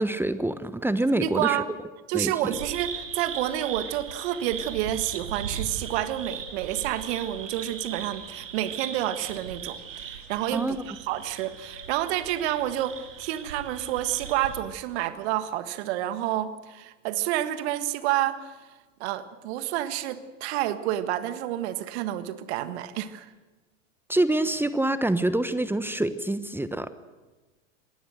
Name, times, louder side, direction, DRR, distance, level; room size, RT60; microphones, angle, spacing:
voice 1, 0.0-1.6 2.1-2.3 10.5-10.8 24.1-26.9, right 1 dB, 5° right, 12 dB, 1.1 m, -26 dB
voice 2, 1.2-1.7 2.1-18.6 19.0-23.3, right 13 dB, 60° right, 11 dB, 1.7 m, -29 dB
sound 1, 2.5-14.6, right 6 dB, 80° right, 3.1 m, -38 dB
26.0 x 19.5 x 6.5 m, 1.2 s
hypercardioid pair, 85°, 37 cm